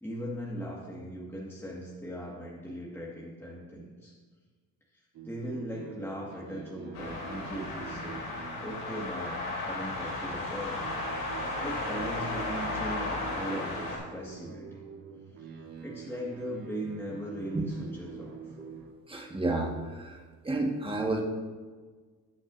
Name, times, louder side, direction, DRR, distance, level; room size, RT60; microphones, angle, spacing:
voice 1, 0.0-4.1 4.9-8.3 8.6-10.8 11.6-14.8 15.8-18.4, equal, 5° left, -5 dB, 1.8 m, -39 dB
sound 1, 5.1-18.9, right 7 dB, 75° right, 1.6 m, -46 dB
sound 2, 6.9-14.0, left 2 dB, 75° left, 3.0 m, -35 dB
voice 2, 19.1-20.2 20.4-21.2, right 2 dB, 15° right, 0 dB, 1.6 m, -30 dB
17.5 x 6.0 x 2.7 m, 1.5 s
cardioid pair, 90°, 37 cm